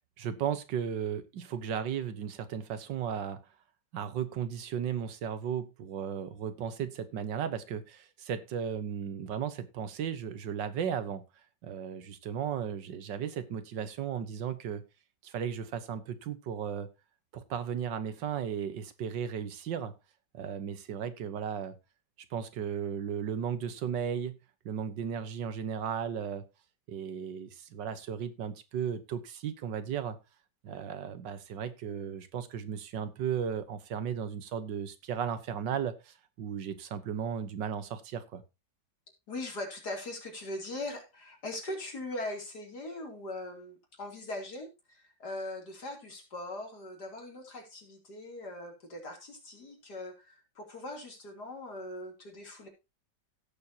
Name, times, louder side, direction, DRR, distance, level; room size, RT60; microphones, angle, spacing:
voice 1, 0.2-3.4 3.9-11.2 11.6-14.8 15.2-16.9 17.3-19.9 20.3-21.8 22.3-24.4 24.7-26.4 26.9-30.2 30.6-38.4, right 8 dB, 85° right, 12 dB, 1.8 m, -35 dB
voice 2, 39.3-52.7, left 1 dB, 65° left, 2 dB, 3.7 m, -40 dB
16.5 x 7.1 x 2.8 m, 0.25 s
omnidirectional pair, 1.9 m